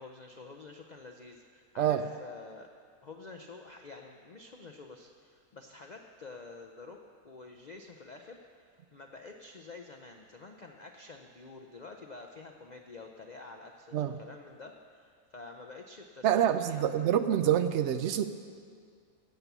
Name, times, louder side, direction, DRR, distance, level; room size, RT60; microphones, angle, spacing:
voice 1, 0.0-2.7 3.0-7.0 7.2-8.4 8.7-17.0, left 3 dB, 85° left, 3 dB, 0.3 m, -49 dB
voice 2, 16.2-18.2, right 10 dB, 75° right, 10 dB, 0.6 m, -26 dB
16.0 x 6.8 x 6.0 m, 2.1 s
omnidirectional pair, 1.7 m